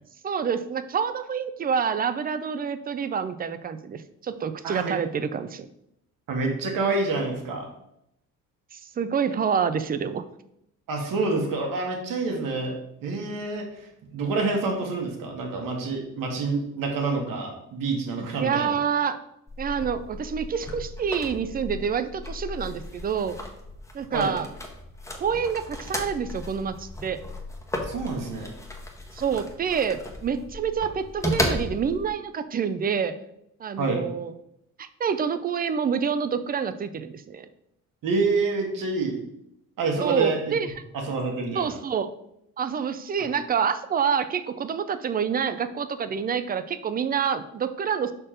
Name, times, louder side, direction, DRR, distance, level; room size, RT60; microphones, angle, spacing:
voice 1, 0.2-5.7 8.7-10.2 18.4-19.2 19.6-23.4 23.9-24.5 25.1-27.2 29.1-33.1 33.6-34.3 34.8-37.5 40.0-40.7 41.6-42.1 42.6-48.1, right 7 dB, 30° right, 12 dB, 0.4 m, -27 dB
voice 2, 4.6-5.0 6.3-7.7 10.9-12.7 13.0-18.8 24.1-24.3 27.8-28.5 33.8-34.0 38.0-39.2 39.8-40.7 40.9-41.8, right 3 dB, 75° right, 2 dB, 1.7 m, -27 dB
sound 1, 19.5-32.1, left 1 dB, 10° left, 1.0 m, -35 dB
5.8 x 4.4 x 5.0 m, 0.79 s
cardioid pair, 140°, 33 cm